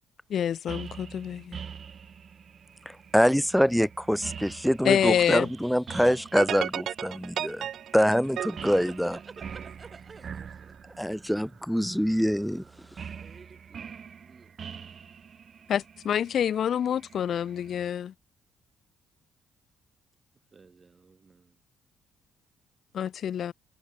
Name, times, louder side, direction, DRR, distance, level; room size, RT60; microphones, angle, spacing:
voice 1, 0.3-1.6 4.8-5.5 15.7-18.1 22.9-23.5, left 9 dB, 65° left, 0.4 m, -27 dB
sound 1, 0.7-18.0, right 7 dB, 50° right, 3.1 m, -45 dB
voice 2, 2.9-7.6 7.9-8.4 8.6-9.1 11.0-12.6, equal, ahead, 0.7 m, -24 dB
sound 2, 6.4-9.7, right 10 dB, 70° right, 0.8 m, -34 dB
voice 3, 7.9-10.7 13.2-14.6 20.5-21.6, right 4 dB, 35° right, 3.9 m, -50 dB
cardioid pair, 90°, 0 cm